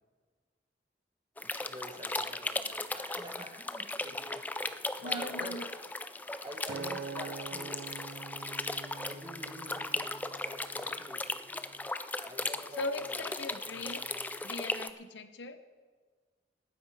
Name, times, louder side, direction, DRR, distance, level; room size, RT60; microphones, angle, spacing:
sound 1, 1.4-14.9, left 2 dB, 10° left, 0.3 m, -37 dB
voice 1, 1.4-5.7 6.4-7.8 9.0-11.2 12.2-13.3 13.6-14.2, right 1 dB, 25° right, 3 dB, 1.5 m, -47 dB
voice 2, 5.0-5.7 12.8-14.0 14.4-15.6, left 3 dB, 85° left, 10 dB, 0.9 m, -39 dB
Acoustic guitar, 6.7-11.0 11.6-11.9, right 5 dB, 70° right, 0.5 m, -45 dB
19.0 x 8.9 x 4.9 m, 1.5 s
head